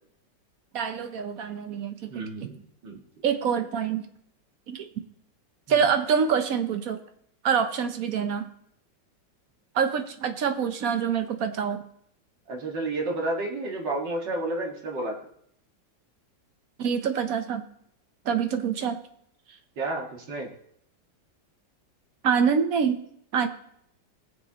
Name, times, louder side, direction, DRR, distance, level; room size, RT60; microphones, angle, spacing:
voice 1, 0.7-2.5 3.2-4.1 4.7-4.9 5.7-7.0 7.4-8.5 9.7-11.9 16.8-17.6 18.2-19.0 22.2-23.0 23.3-23.5, right 7 dB, 60° right, 8 dB, 1.2 m, -26 dB
voice 2, 2.1-3.0 5.7-5.8 12.5-15.2 19.8-20.5, right 2 dB, 75° right, 0 dB, 2.5 m, -31 dB
21.0 x 7.3 x 2.9 m, 0.70 s
omnidirectional pair, 1.9 m